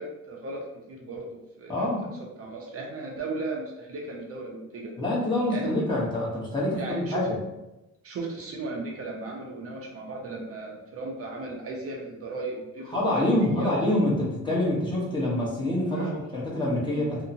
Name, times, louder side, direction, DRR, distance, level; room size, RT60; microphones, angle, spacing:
voice 1, 0.0-1.9 2.2-4.9 5.5-5.8 6.7-7.2 8.0-13.8 15.9-16.1, right 3 dB, 50° right, 0 dB, 0.6 m, -36 dB
voice 2, 1.7-2.1 5.0-7.3 12.9-17.2, left 1 dB, 15° left, -5 dB, 0.9 m, -26 dB
2.7 x 2.1 x 2.6 m, 0.95 s
cardioid pair, 90°, 30 cm